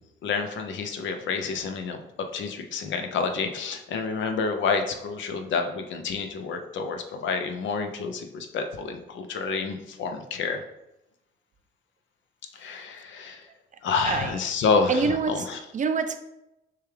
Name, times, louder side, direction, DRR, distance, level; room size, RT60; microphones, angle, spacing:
voice 1, 0.2-2.0 2.3-10.6 12.6-13.4 13.8-15.6, left 5 dB, 70° left, 5 dB, 0.6 m, -28 dB
voice 2, 14.9-16.2, right 5 dB, 40° right, 8 dB, 0.4 m, -26 dB
6.5 x 2.3 x 3.3 m, 0.90 s
cardioid pair, 90°, 20 cm